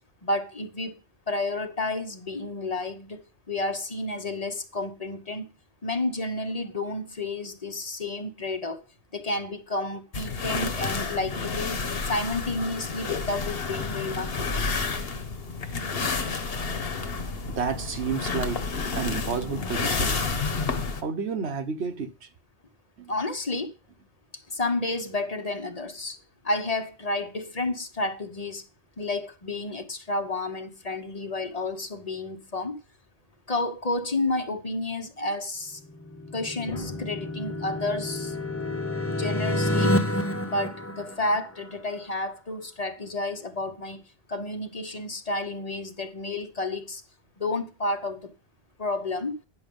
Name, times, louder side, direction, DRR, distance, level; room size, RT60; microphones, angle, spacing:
voice 1, 0.2-1.0 1.3-5.5 5.8-8.8 9.1-14.6 23.1-23.7 24.5-26.2 26.4-28.6 29.0-32.8 33.5-35.8 36.3-38.4 38.7-38.8 39.1-39.9 40.4-44.0 44.3-47.0 47.4-48.3 48.8-49.4, left 2 dB, 40° left, 1.1 m, -31 dB
sound 1, 10.1-21.0, left 4 dB, 65° left, 1.4 m, -30 dB
voice 2, 17.6-18.6 19.0-20.2 21.0-22.3 23.0-23.1, right 5 dB, 85° right, 1.5 m, -30 dB
sound 2, 35.8-41.7, left 1 dB, 15° left, 0.7 m, -29 dB
10.0 x 6.5 x 5.4 m
omnidirectional pair, 1.1 m